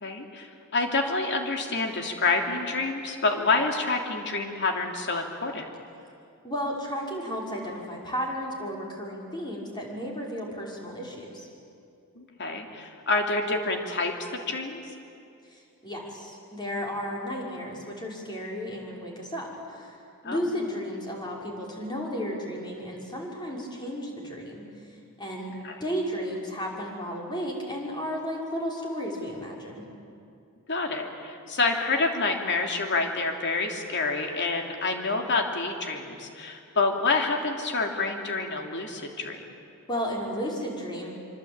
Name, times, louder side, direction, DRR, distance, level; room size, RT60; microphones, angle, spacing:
voice 1, 0.0-5.6 12.2-14.8 20.2-20.4 25.6-25.8 30.7-39.4, left 3 dB, 55° left, 3 dB, 3.1 m, -28 dB
voice 2, 6.4-11.5 15.5-20.0 20.2-24.7 25.2-25.6 25.8-29.8 39.9-41.1, equal, 20° left, -2 dB, 5.5 m, -33 dB
25.5 x 25.0 x 8.9 m, 2.5 s
head